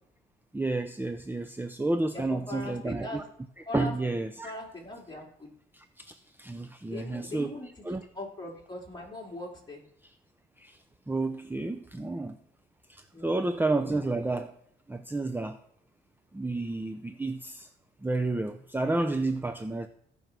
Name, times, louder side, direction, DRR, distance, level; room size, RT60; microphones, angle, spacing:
voice 1, 0.5-3.2 3.7-4.5 5.7-7.5 7.8-8.1 10.0-10.1 10.6-10.8 11.1-12.4 12.9-14.6 14.9-15.6 16.3-17.7 18.0-19.9, right 2 dB, 10° right, 0.7 m, -31 dB
voice 2, 2.1-3.2 3.7-3.9 4.4-5.5 6.9-7.7 8.2-9.8 13.1-13.5, left 1 dB, 20° left, 3.7 m, -40 dB
16.0 x 5.4 x 6.2 m
cardioid pair, 90°, 20 cm